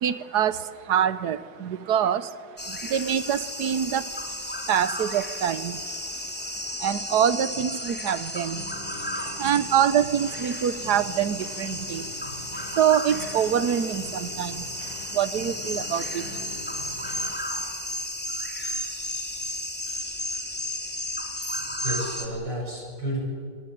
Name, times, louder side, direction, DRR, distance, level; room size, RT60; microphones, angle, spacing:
voice 1, 0.0-17.4, right 9 dB, 65° right, 15 dB, 1.5 m, -26 dB
sound 1, 2.6-22.3, left 1 dB, 5° left, 2.6 m, -33 dB
sound 2, 6.3-17.9, left 2 dB, 70° left, 6.7 m, -44 dB
voice 2, 21.6-23.2, equal, 80° right, -1 dB, 8.3 m, -32 dB
27.0 x 19.5 x 9.3 m, 2.2 s
omnidirectional pair, 1.9 m